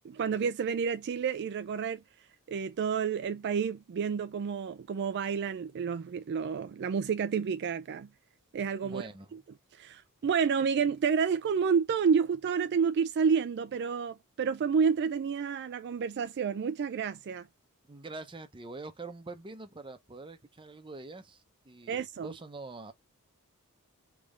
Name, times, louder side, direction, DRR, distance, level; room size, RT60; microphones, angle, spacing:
voice 1, 0.0-2.0 2.5-8.1 8.5-9.1 9.7-17.4 21.9-22.3, right 6 dB, 50° right, 0.3 m, -29 dB
voice 2, 8.8-9.4 17.9-22.9, right 3 dB, 25° right, 0.7 m, -45 dB
3.5 x 3.4 x 3.7 m
head